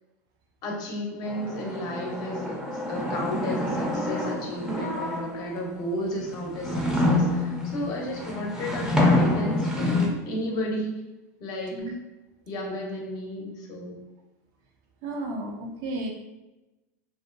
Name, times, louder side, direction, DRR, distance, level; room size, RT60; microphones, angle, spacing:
voice 1, 0.6-10.9 11.4-11.8 12.5-14.0, left 1 dB, 45° left, -1 dB, 0.7 m, -33 dB
sound 1, 1.3-5.6 6.2-10.1, left 1 dB, 5° right, 0.6 m, -27 dB
voice 2, 15.0-16.1, right 2 dB, 50° right, 2 dB, 0.5 m, -33 dB
2.6 x 2.1 x 2.4 m, 1.0 s
hypercardioid pair, 110°, 9 cm